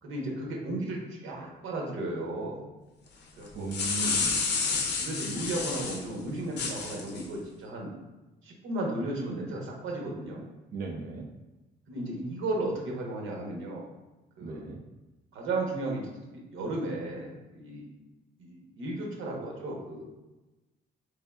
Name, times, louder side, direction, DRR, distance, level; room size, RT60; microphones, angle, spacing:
voice 1, 0.0-2.6 3.4-3.7 4.8-7.9 8.4-10.4 11.9-13.9 14.4-14.6 15.3-17.9 18.4-20.2, right 2 dB, 85° right, -1 dB, 0.9 m, -34 dB
sound 1, 3.5-6.0 6.6-7.2, left 5 dB, 60° left, 0.6 m, -30 dB
voice 2, 3.5-4.3 10.7-11.3 14.4-14.8, right 4 dB, 50° right, 0 dB, 0.5 m, -36 dB
3.5 x 3.3 x 2.3 m, 1.1 s
cardioid pair, 90°, 20 cm